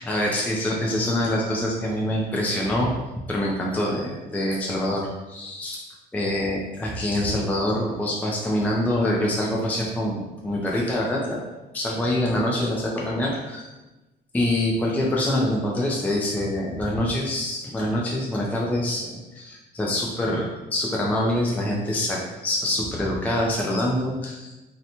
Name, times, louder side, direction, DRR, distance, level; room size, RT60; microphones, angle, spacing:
voice 1, 0.0-2.9 3.3-5.9 6.1-11.4 11.7-13.7 14.3-24.5, left 1 dB, 10° left, -3 dB, 0.4 m, -25 dB
2.7 x 2.1 x 2.8 m, 1.1 s
cardioid pair, 110°, 17 cm